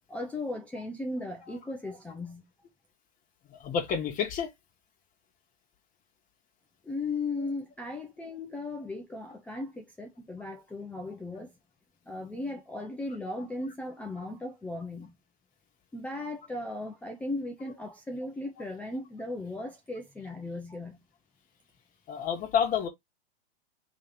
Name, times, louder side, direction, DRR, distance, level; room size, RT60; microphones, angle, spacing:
voice 1, 0.1-2.4 6.8-11.5 12.1-15.2 15.9-21.0, left 2 dB, 5° left, 0.4 m, -37 dB
voice 2, 3.6-4.5 22.1-22.9, left 7 dB, 25° left, 1.3 m, -28 dB
3.3 x 2.8 x 3.4 m
hypercardioid pair, 115°, 31 cm